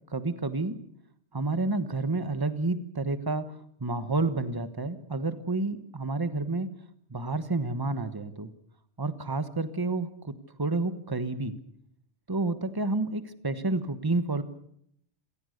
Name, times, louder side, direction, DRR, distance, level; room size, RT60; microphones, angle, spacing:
voice 1, 0.1-0.8 1.3-3.5 3.8-6.7 7.1-8.5 9.0-10.3 10.6-11.5 12.3-14.4, right 3 dB, 20° right, 11 dB, 1.4 m, -29 dB
26.5 x 18.5 x 6.7 m, 0.70 s
omnidirectional pair, 1.1 m